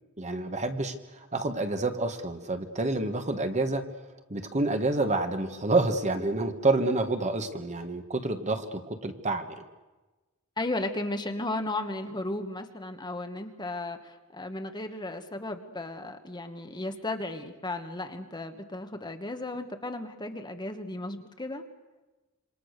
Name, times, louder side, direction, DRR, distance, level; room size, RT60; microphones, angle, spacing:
voice 1, 0.2-3.8 4.3-9.6, right 2 dB, 35° right, 6 dB, 1.7 m, -28 dB
voice 2, 10.6-21.6, left 2 dB, 20° left, 6 dB, 1.4 m, -35 dB
27.0 x 25.0 x 6.7 m, 1.2 s
head